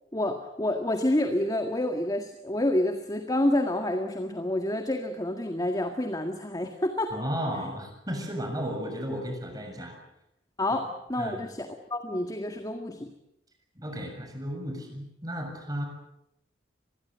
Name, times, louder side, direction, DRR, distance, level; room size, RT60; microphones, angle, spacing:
voice 1, 0.1-7.1 10.6-13.1, left 1 dB, 20° left, 5 dB, 1.9 m, -28 dB
voice 2, 7.1-10.0 11.2-11.4 13.8-15.9, equal, 20° right, 4 dB, 6.9 m, -34 dB
26.0 x 21.0 x 8.0 m, 0.82 s
head